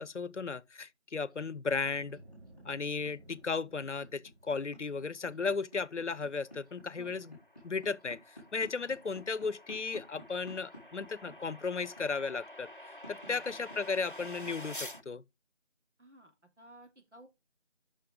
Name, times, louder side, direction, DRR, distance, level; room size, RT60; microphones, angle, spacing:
voice 1, 0.0-2.2 2.6-7.4 7.6-12.7 13.1-15.2, left 4 dB, 85° left, 0.7 m, -35 dB
sound 1, 1.3-15.0, left 1 dB, 15° right, 3.0 m, -51 dB
Boom, 1.6-4.7, right 1 dB, 65° right, 4.7 m, -56 dB
sound 2, 6.5-15.0, left 1 dB, 50° left, 0.5 m, -49 dB
voice 2, 16.0-17.3, right 1 dB, 80° right, 2.8 m, -55 dB
9.7 x 5.6 x 3.6 m
figure-of-eight pair, 175°, 35 cm